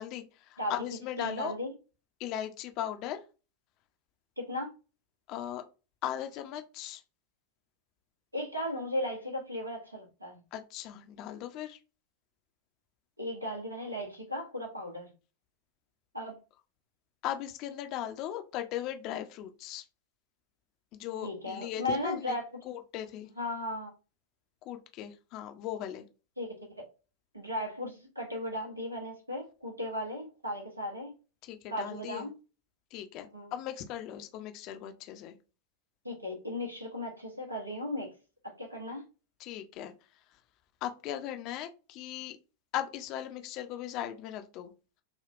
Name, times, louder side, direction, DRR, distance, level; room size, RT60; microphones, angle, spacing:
voice 1, 0.0-1.5 2.2-3.2 5.3-5.6 6.0-7.0 10.5-11.8 17.2-19.8 20.9-22.4 22.6-23.3 24.7-26.1 31.4-32.3 32.9-35.4 39.4-39.9 40.8-42.4 42.7-44.7, left 11 dB, 40° left, 0.5 m, -38 dB
voice 2, 1.2-1.7 4.4-4.7 8.3-10.4 13.2-15.1 16.1-16.4 21.2-22.4 23.4-23.9 26.4-26.8 27.3-31.1 31.7-32.3 33.3-33.5 36.0-38.1 38.4-39.0, left 1 dB, 85° right, 1.1 m, -36 dB
3.5 x 2.3 x 2.4 m
figure-of-eight pair, 90°, 0 cm